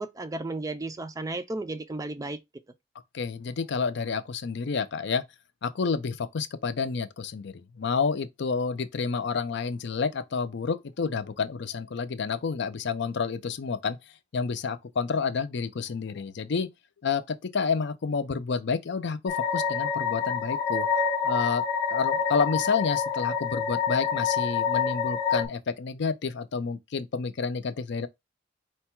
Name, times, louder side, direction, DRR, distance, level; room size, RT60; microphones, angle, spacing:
voice 1, 0.0-2.4, right 2 dB, 20° right, 0.4 m, -34 dB
voice 2, 3.1-5.2 5.6-14.0 14.3-16.7 17.0-20.9 21.2-21.6 21.9-28.1, left 5 dB, 65° left, 0.5 m, -29 dB
sound 1, 19.3-25.5, left 6 dB, 20° left, 0.9 m, -27 dB
4.5 x 2.3 x 4.4 m
head